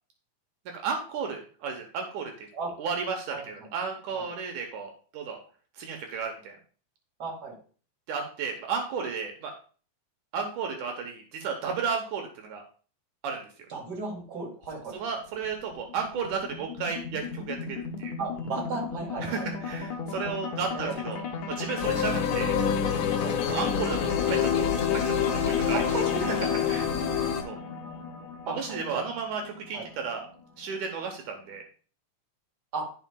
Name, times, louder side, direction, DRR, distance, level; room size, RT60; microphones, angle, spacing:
voice 1, 0.7-2.5 2.8-5.4 5.8-6.6 8.1-9.5 10.3-12.6 13.2-13.5 14.9-18.1 19.2-21.2 21.5-22.5 23.5-24.7 24.9-25.8 26.7-26.9 27.4-27.6 28.5-29.4 29.7-30.2 30.6-31.6, right 5 dB, 80° right, 3 dB, 2.5 m, -33 dB
voice 2, 7.2-7.5 13.7-15.0 18.2-19.5 20.5-21.0 23.2-23.4 25.7-26.4 28.4-29.0 29.7-29.9 32.7-32.9, right 3 dB, 35° right, -2 dB, 2.6 m, -35 dB
sound 1, 14.6-31.0, left 4 dB, 70° left, 2.2 m, -36 dB
sound 2, 21.8-27.4, left 8 dB, 85° left, 2.3 m, -27 dB
12.0 x 5.7 x 2.3 m, 0.40 s
omnidirectional pair, 3.5 m